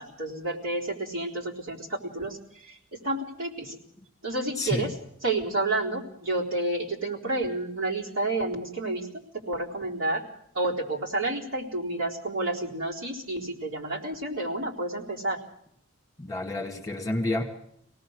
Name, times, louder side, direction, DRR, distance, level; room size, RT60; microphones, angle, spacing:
voice 1, 0.0-2.8 3.0-3.8 4.2-4.9 5.2-9.1 9.5-10.2 10.5-15.4, right 2 dB, 70° right, -2 dB, 4.0 m, -30 dB
voice 2, 4.6-4.9 16.2-17.4, left 2 dB, 15° left, 3 dB, 2.1 m, -29 dB
26.0 x 18.0 x 6.5 m, 0.71 s
head